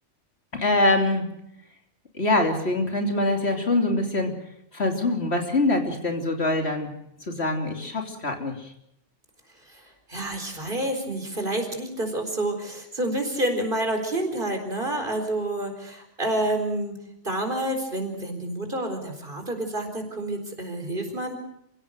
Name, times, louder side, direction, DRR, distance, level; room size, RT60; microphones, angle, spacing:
voice 1, 0.5-1.3 2.1-4.3 4.7-6.9 7.3-8.7, left 2 dB, 60° left, 4 dB, 3.3 m, -24 dB
voice 2, 10.1-16.9 17.2-21.4, right 1 dB, 45° right, 4 dB, 4.4 m, -28 dB
27.5 x 16.5 x 6.4 m, 0.77 s
omnidirectional pair, 1.2 m